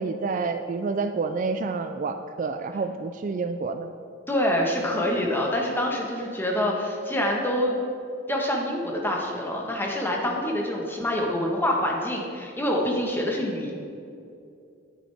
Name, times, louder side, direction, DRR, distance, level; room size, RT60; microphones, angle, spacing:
voice 1, 0.0-3.9, right 4 dB, 40° right, 8 dB, 0.3 m, -28 dB
voice 2, 4.3-7.8 8.3-13.7, left 1 dB, 10° left, -1 dB, 1.2 m, -26 dB
10.0 x 9.2 x 3.4 m, 2.5 s
head